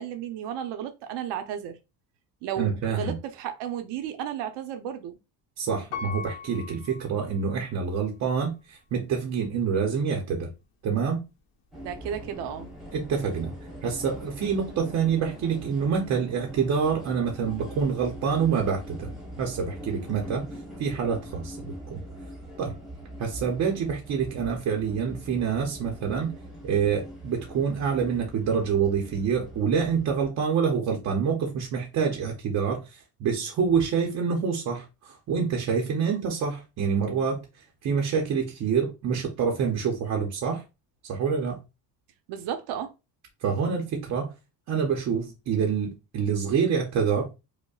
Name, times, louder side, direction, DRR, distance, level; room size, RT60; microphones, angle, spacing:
voice 1, 0.0-1.8 2.4-5.1 11.8-12.7 42.3-42.9, right 9 dB, 80° right, 0.7 m, -33 dB
voice 2, 2.6-3.2 5.6-10.5 10.8-11.2 12.9-13.6 13.8-19.1 19.4-20.5 20.8-22.0 22.6-22.7 23.2-26.3 26.6-37.4 37.8-40.6 41.0-41.6 43.4-44.3 44.7-47.3, right 6 dB, 40° right, 0.6 m, -27 dB
Piano, 5.9-7.9 8.5-8.6, left 6 dB, 75° left, 1.1 m, -39 dB
sound 1, 11.7-30.3, equal, ahead, 0.9 m, -42 dB
5.1 x 2.1 x 2.3 m
cardioid pair, 180°, 42 cm